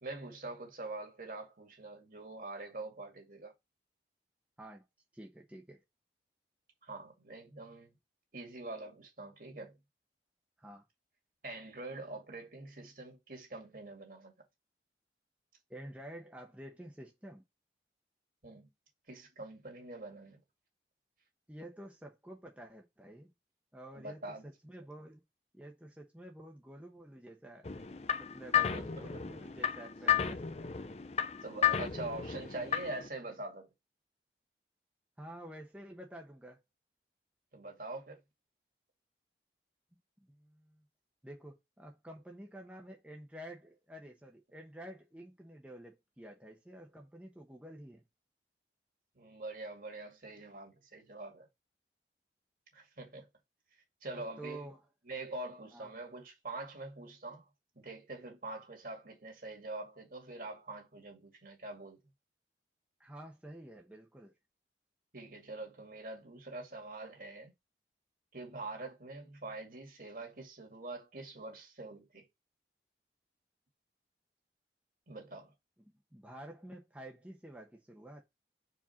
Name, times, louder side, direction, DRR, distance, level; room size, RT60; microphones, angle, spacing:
voice 1, 0.0-3.5 6.8-7.9 8.3-9.7 11.4-14.3 18.4-18.7 19.1-20.4 23.9-24.5 28.5-28.8 29.1-29.2 31.4-33.7 37.5-38.2 49.2-51.5 52.7-53.3 54.0-54.7 55.1-57.5 57.8-62.0 65.1-67.5 68.3-72.3 75.1-75.5, right 2 dB, 50° right, 2.2 m, -44 dB
voice 2, 5.1-5.8 10.6-10.8 15.7-17.4 21.5-23.3 23.7-25.2 25.5-27.7 28.2-30.9 35.2-36.6 40.3-40.8 41.2-48.0 54.1-54.8 55.7-55.9 63.0-64.3 75.8-78.2, right 1 dB, 10° right, 0.9 m, -50 dB
sound 1, 27.6-33.1, left 8 dB, 35° left, 0.5 m, -33 dB
4.9 x 4.4 x 5.8 m
head